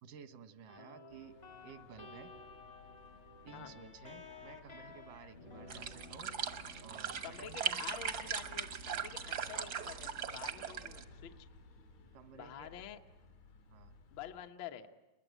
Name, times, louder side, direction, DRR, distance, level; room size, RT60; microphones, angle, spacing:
voice 1, 0.0-1.3 1.6-2.3 3.5-6.3 6.8-7.6 12.1-12.7 13.7-14.0, right 7 dB, 85° right, 9 dB, 2.8 m, -54 dB
sound 1, 0.7-14.2, left 3 dB, 40° left, 0.8 m, -56 dB
sound 2, 1.1-14.5, left 3 dB, 85° left, 4.5 m, -60 dB
sound 3, 5.7-11.0, right 7 dB, 65° right, 0.9 m, -39 dB
voice 2, 7.2-11.5 12.3-13.0 14.1-14.9, left 10 dB, 70° left, 4 dB, 1.1 m, -48 dB
29.5 x 21.0 x 9.2 m, 1.1 s
omnidirectional pair, 3.7 m